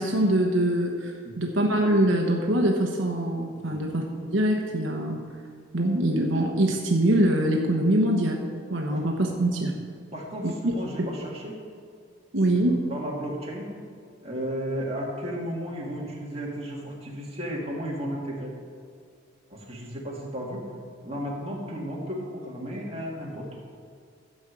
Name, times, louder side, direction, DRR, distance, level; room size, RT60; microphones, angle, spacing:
voice 1, 0.0-4.0 4.3-5.2 5.7-8.4 8.7-9.7 10.4-10.7 11.0-11.1 12.3-12.8, right 1 dB, 75° right, 1 dB, 1.1 m, -23 dB
voice 2, 10.1-11.6 12.9-13.7 14.2-18.5 19.5-20.7 21.0-23.5, equal, 30° right, -3 dB, 2.2 m, -34 dB
12.5 x 5.4 x 7.7 m, 2.3 s
head